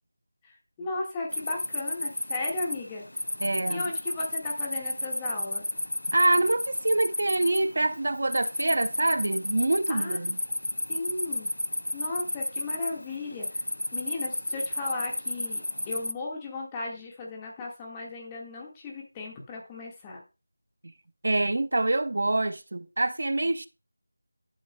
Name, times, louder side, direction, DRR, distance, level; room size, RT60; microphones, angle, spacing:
voice 1, 0.4-3.0 3.7-5.6 9.9-10.2 10.9-11.5 11.9-13.6 13.9-20.2, left 2 dB, 15° left, 1.6 m, -36 dB
sound 1, 1.3-16.1, left 1 dB, 85° left, 0.5 m, -32 dB
voice 2, 3.4-3.8 6.1-10.4 21.2-23.7, right 2 dB, 60° right, 0.5 m, -25 dB
12.0 x 6.2 x 2.2 m
figure-of-eight pair, 170°, 0 cm